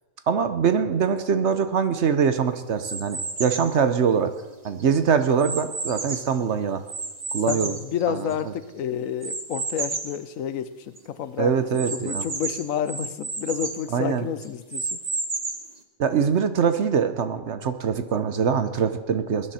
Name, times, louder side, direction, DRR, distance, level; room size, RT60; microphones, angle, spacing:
voice 1, 0.3-4.3 4.6-6.8 7.3-7.7 11.4-12.2 13.9-14.2 16.0-19.5, right 6 dB, 60° right, 10 dB, 1.1 m, -23 dB
sound 1, 2.8-3.8 4.4-6.4 6.9-8.6 9.2-10.2 10.6-10.7 11.0-11.1 11.7-13.8 14.4-15.8, right 3 dB, 30° right, 1.2 m, -32 dB
voice 2, 7.5-15.0, left 9 dB, 75° left, 13 dB, 1.1 m, -30 dB
21.0 x 11.0 x 4.3 m, 1.1 s
omnidirectional pair, 1.4 m